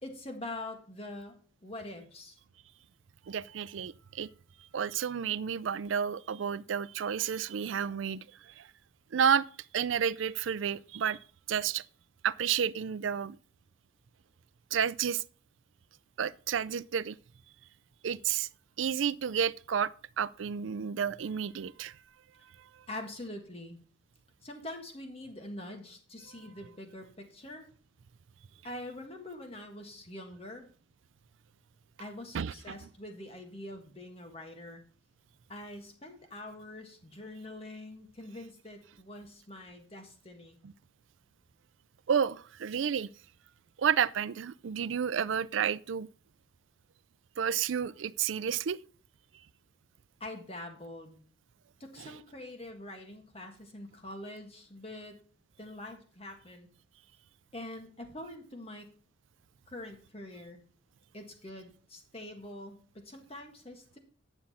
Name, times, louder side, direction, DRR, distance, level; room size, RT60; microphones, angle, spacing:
voice 1, 0.0-2.4 22.9-23.8 24.4-27.7 28.6-30.7 32.0-34.8 35.5-40.6 50.2-51.2 51.8-55.2 55.6-56.7 57.5-58.9 59.7-60.6 61.1-64.0, left 1 dB, 30° left, 1.7 m, -44 dB
voice 2, 3.3-4.3 4.7-8.2 8.6-8.7 9.1-9.5 9.7-11.2 11.5-11.8 12.2-13.4 14.7-15.2 16.2-17.1 18.0-18.5 18.8-21.9 32.3-32.5 40.6-40.7 42.1-43.1 43.8-46.1 47.4-48.8, right 7 dB, 80° right, 0.4 m, -30 dB
9.8 x 7.1 x 4.2 m
head